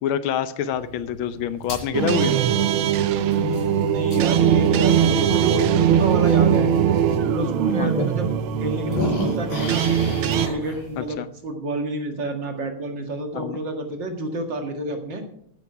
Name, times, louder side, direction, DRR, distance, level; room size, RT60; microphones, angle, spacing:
voice 1, 0.0-2.4 7.8-8.1 11.0-11.3 13.3-13.6, left 8 dB, 80° left, 13 dB, 1.5 m, -26 dB
sound 1, 0.7-7.2 7.7-7.8 8.1-11.1, left 1 dB, 60° left, 4.8 m, -34 dB
sound 2, 1.9-10.5, right 9 dB, 85° right, 1.6 m, -20 dB
voice 2, 3.2-6.7 7.2-8.3 8.6-9.9 10.5-15.2, right 1 dB, 60° right, 4 dB, 2.5 m, -29 dB
14.0 x 10.0 x 4.8 m, 0.68 s
omnidirectional pair, 2.3 m